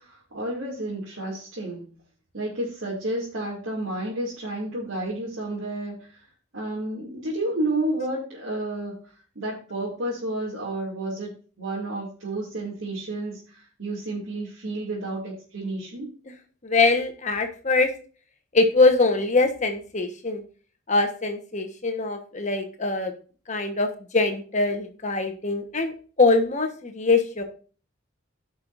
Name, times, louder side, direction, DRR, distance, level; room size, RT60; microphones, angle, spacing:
voice 1, 0.0-1.9 2.3-6.0 6.5-9.0 9.4-16.1, right 1 dB, 85° right, -7 dB, 2.6 m, -31 dB
voice 2, 16.6-17.9 18.5-20.4 20.9-23.1 23.5-23.9 24.1-27.4, left 3 dB, 40° left, 6 dB, 1.2 m, -23 dB
15.0 x 5.7 x 2.6 m, 0.38 s
head